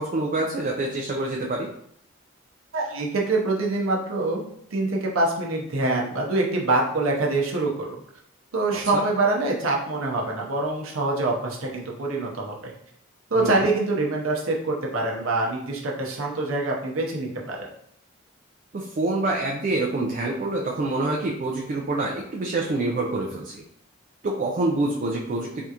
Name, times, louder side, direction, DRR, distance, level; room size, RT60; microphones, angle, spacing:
voice 1, 0.0-1.7 8.9-9.0 13.3-13.7 18.7-23.6 24.2-25.6, right 2 dB, 40° right, -1 dB, 0.3 m, -26 dB
voice 2, 2.7-4.4 4.7-8.0 8.5-12.7 13.3-17.7, right 2 dB, 85° right, -1 dB, 0.7 m, -25 dB
3.4 x 2.4 x 2.8 m, 0.70 s
head